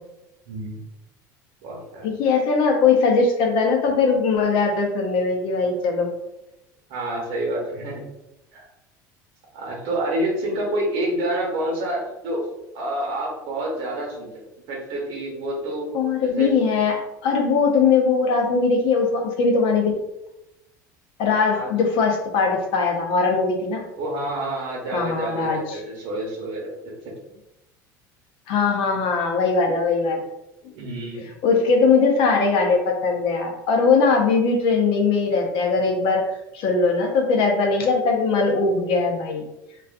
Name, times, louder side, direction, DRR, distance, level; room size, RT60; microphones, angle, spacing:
voice 1, 0.5-0.8 1.6-2.1 6.9-8.0 8.5-8.6 9.5-12.4 12.7-15.9 16.2-16.5 21.5-21.7 24.0-26.9 30.7-31.3, right 1 dB, 60° right, -2 dB, 1.0 m, -28 dB
voice 2, 2.0-6.1 15.9-19.9 21.2-23.8 24.9-25.8 28.5-30.2 31.2-36.3 36.5-39.5, left 4 dB, 55° left, 2 dB, 0.6 m, -20 dB
2.4 x 2.3 x 2.4 m, 0.91 s
hypercardioid pair, 75°, 10 cm